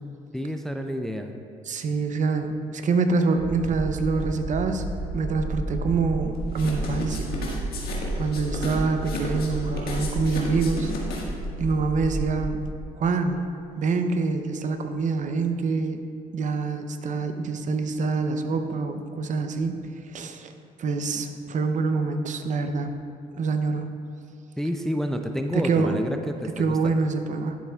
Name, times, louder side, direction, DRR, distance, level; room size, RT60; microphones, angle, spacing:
voice 1, 0.3-1.3 24.6-26.9, equal, ahead, 6 dB, 0.4 m, -29 dB
voice 2, 1.7-4.9 5.1-7.3 8.2-10.9 11.6-12.6 13.0-13.4 13.8-16.0 16.3-19.8 20.1-20.5 20.8-22.9 23.3-23.9 25.5-26.0 26.6-27.6, right 4 dB, 45° right, 7 dB, 0.6 m, -25 dB
sound 1, 3.4-12.7, right 1 dB, 75° right, 1.2 m, -32 dB
sound 2, 6.5-11.5, left 3 dB, 65° left, 1.6 m, -34 dB
11.0 x 7.1 x 2.3 m, 2.5 s
supercardioid pair, 70°, 17 cm